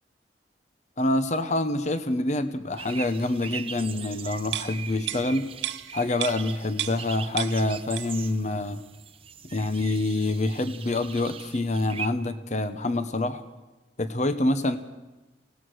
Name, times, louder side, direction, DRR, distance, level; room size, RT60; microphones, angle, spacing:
voice 1, 1.0-5.5 5.9-8.8 9.5-13.4 14.0-14.8, left 2 dB, 40° left, 11 dB, 1.0 m, -26 dB
sound 1, 2.8-12.1, right 7 dB, 30° right, 0.7 m, -41 dB
sound 2, 4.5-7.1 7.4-8.3 8.7-8.8, right 12 dB, 90° right, 0.7 m, -34 dB
25.5 x 18.0 x 6.3 m, 1.1 s
head